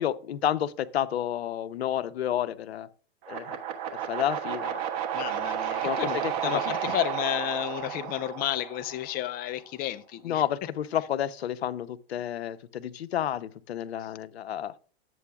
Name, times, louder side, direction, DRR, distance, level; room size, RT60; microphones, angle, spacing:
voice 1, 0.0-2.9 3.3-3.6 4.1-4.8 5.8-6.6 10.2-14.7, left 10 dB, 85° left, 0.7 m, -30 dB
sound 1, 3.2-9.4, right 10 dB, 50° right, 1.4 m, -32 dB
voice 2, 5.1-10.4 14.0-14.1, left 13 dB, 30° left, 0.5 m, -32 dB
11.0 x 7.7 x 2.3 m
hypercardioid pair, 115°, 31 cm